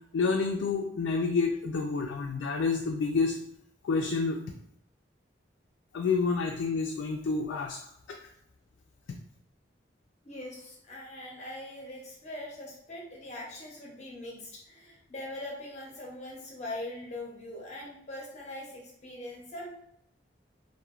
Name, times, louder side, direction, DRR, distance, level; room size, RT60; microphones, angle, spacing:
voice 1, 0.1-3.4 3.8-4.4 5.9-7.8, left 4 dB, 90° left, 1 dB, 0.3 m, -28 dB
voice 2, 10.2-19.8, left 1 dB, 35° left, -2 dB, 0.7 m, -42 dB
3.1 x 2.1 x 2.3 m, 0.75 s
head